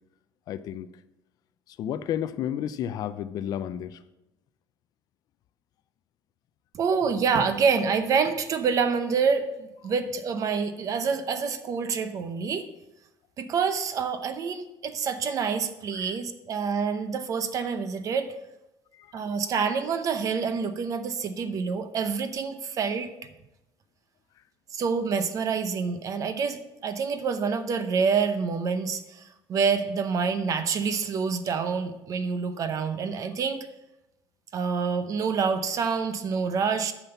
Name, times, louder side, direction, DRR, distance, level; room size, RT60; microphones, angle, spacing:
voice 1, 0.5-0.9 1.7-4.0 15.9-16.1 18.9-19.1, left 10 dB, 45° left, 12 dB, 0.4 m, -32 dB
voice 2, 6.7-12.7 13.4-18.3 19.1-23.1 24.7-33.7 34.5-36.9, right 5 dB, 40° right, 10 dB, 0.7 m, -27 dB
9.0 x 5.9 x 6.8 m, 0.93 s
cardioid pair, 160°, 9 cm